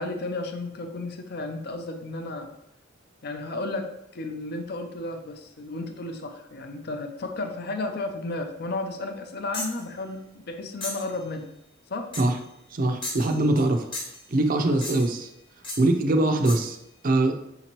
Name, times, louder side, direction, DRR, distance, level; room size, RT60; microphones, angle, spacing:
voice 1, 0.0-2.5 3.2-11.5 11.9-12.1, left 2 dB, 50° left, 4 dB, 0.5 m, -33 dB
sound 1, 9.5-9.8 10.8-11.1 12.1-12.4 13.0-13.7 13.9-14.3 14.8-15.2 15.6-15.9 16.5-16.7, left 2 dB, 25° left, 0.9 m, -35 dB
voice 2, 12.7-13.9 14.3-15.3 15.8-16.8 17.0-17.4, right 2 dB, 45° right, 5 dB, 0.5 m, -22 dB
5.8 x 2.9 x 3.0 m, 0.79 s
head